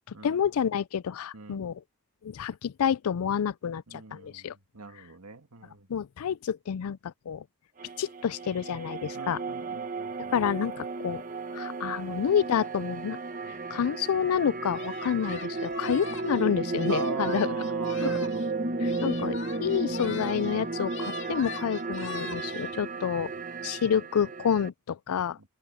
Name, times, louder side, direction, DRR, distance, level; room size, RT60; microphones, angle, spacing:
voice 1, 0.1-1.8 2.2-4.5 5.9-7.4 8.0-9.4 10.3-11.2 11.5-13.2 13.7-17.6 18.0-18.2 18.8-23.3 23.6-25.4, left 8 dB, 80° left, 0.4 m, -29 dB
voice 2, 1.3-1.7 3.9-4.5 4.7-5.9 9.1-10.3 13.4-13.6 16.9-18.5 18.8-19.1 22.2-22.7, right 4 dB, 90° right, 2.0 m, -41 dB
sound 1, 7.8-24.7, right 3 dB, 35° right, 1.4 m, -34 dB
Singing, 14.7-18.5 18.8-20.6 20.8-22.7, left 5 dB, 55° left, 2.2 m, -42 dB
head